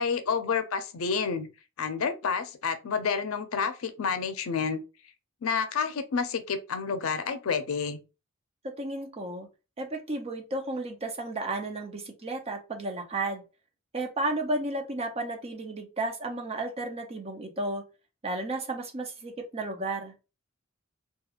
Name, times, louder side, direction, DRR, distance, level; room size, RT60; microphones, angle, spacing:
voice 1, 0.0-1.5 1.8-4.8 5.4-8.0, left 5 dB, 85° left, 0.5 m, -29 dB
voice 2, 8.6-9.5 9.8-13.4 13.9-17.8 18.2-20.1, right 2 dB, 30° right, 0.6 m, -33 dB
2.9 x 2.3 x 2.4 m
head